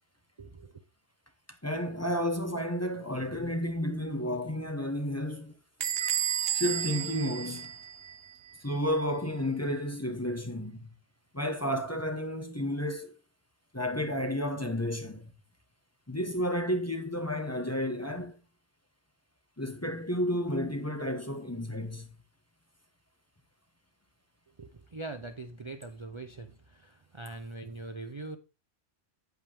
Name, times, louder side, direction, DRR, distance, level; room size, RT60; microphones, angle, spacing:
voice 1, 0.4-0.8 24.6-28.4, right 2 dB, 30° right, 0.6 m, -42 dB
voice 2, 1.6-5.5 6.5-7.7 8.6-10.9 11.3-13.2 13.7-15.3 16.1-18.4 19.6-22.1, equal, 15° left, 1.0 m, -31 dB
Bell / Squeak, 5.8-8.3, right 10 dB, 65° right, 0.9 m, -32 dB
8.9 x 8.1 x 3.4 m
omnidirectional pair, 1.2 m